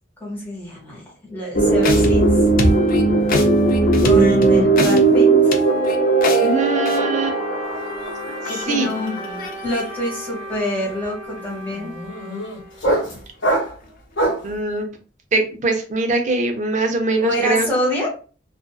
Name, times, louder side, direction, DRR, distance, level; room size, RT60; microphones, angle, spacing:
voice 1, 0.2-2.4 4.0-5.5 8.5-9.2 9.6-11.9 17.2-18.2, left 1 dB, 10° left, -5 dB, 1.2 m, -26 dB
sound 1, 1.5-9.8, right 2 dB, 45° left, 0.5 m, -17 dB
Wind instrument woodwind instrument, 5.6-13.2, right 1 dB, 85° right, 0.6 m, -36 dB
voice 2, 6.4-7.4 8.3-8.4 8.7-8.9 14.4-14.9 15.3-17.7, right 3 dB, 40° right, 5 dB, 0.5 m, -22 dB
sound 2, 7.8-8.1 8.3-14.6, right 1 dB, 65° left, 0.9 m, -26 dB
2.6 x 2.3 x 2.3 m, 0.37 s
head